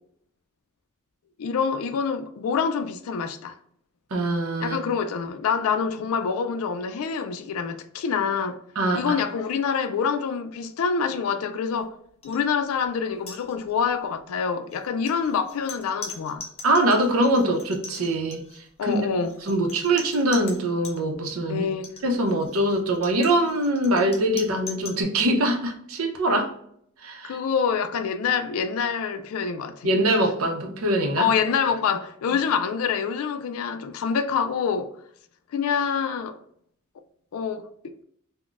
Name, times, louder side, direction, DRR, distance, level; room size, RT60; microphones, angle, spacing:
voice 1, 1.4-3.6 4.6-8.6 8.9-11.9 12.2-16.4 18.8-19.3 21.5-21.9 27.2-29.9 31.2-34.9 35.5-36.4 37.3-38.0, left 6 dB, 70° left, 0.3 m, -26 dB
voice 2, 4.1-4.8 8.8-9.2 16.6-19.0 19.4-21.6 22.0-26.5 27.0-27.4 29.8-31.3, right 1 dB, 75° right, 0.6 m, -23 dB
sound 1, 12.2-12.4 12.7-12.9 13.2-13.9 14.7-21.0 21.7-25.0, left 4 dB, 30° left, 0.6 m, -41 dB
3.8 x 2.1 x 2.4 m
head